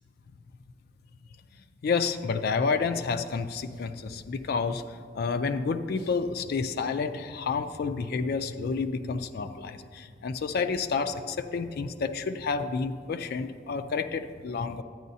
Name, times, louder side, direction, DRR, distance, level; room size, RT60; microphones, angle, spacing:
voice 1, 1.8-4.8 5.2-14.8, left 5 dB, 55° left, 9 dB, 0.4 m, -30 dB
12.0 x 9.2 x 2.7 m, 2.1 s
head